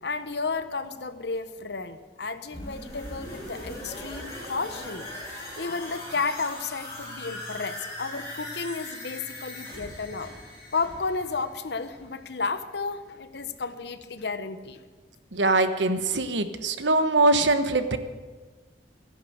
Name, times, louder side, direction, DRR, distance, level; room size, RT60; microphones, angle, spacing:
voice 1, 0.0-10.3 10.7-14.8, left 4 dB, 65° left, 11 dB, 0.9 m, -32 dB
sound 1, 2.5-12.2 12.6-12.7, left 1 dB, 15° left, 5.4 m, -40 dB
voice 2, 15.3-18.0, right 2 dB, 80° right, 10 dB, 1.1 m, -22 dB
15.0 x 10.5 x 7.9 m, 1.4 s
head